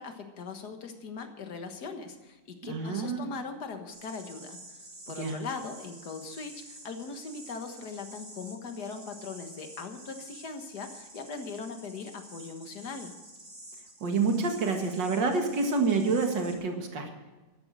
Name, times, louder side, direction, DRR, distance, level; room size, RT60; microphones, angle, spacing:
voice 1, 0.0-13.1, left 4 dB, 65° left, 6 dB, 2.0 m, -40 dB
voice 2, 2.6-3.3 5.2-5.4 14.0-17.1, right 4 dB, 85° right, 4 dB, 2.5 m, -28 dB
sound 1, 3.9-16.5, right 1 dB, 50° right, 5.4 m, -49 dB
13.5 x 11.0 x 6.3 m, 1.2 s
omnidirectional pair, 1.9 m